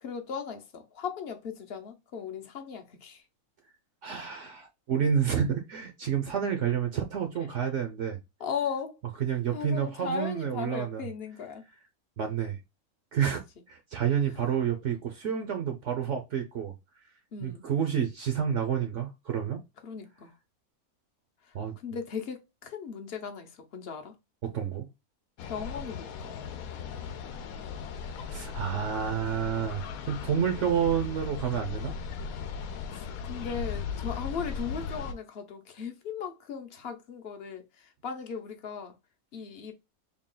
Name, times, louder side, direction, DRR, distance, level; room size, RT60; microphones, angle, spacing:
voice 1, 0.0-3.2 8.4-9.0 9.5-11.6 17.3-17.6 19.8-20.3 21.4-24.1 25.4-26.4 32.9-38.9 39.3-39.7, left 6 dB, 50° left, 0.8 m, -37 dB
voice 2, 4.0-8.2 9.2-11.0 12.2-12.6 13.1-16.7 17.4-19.6 21.5-21.7 24.4-24.9 28.3-31.9, right 8 dB, 65° right, 0.9 m, -29 dB
sound 1, 25.4-35.1, left 6 dB, 80° left, 1.1 m, -37 dB
3.6 x 2.3 x 3.7 m
omnidirectional pair, 1.5 m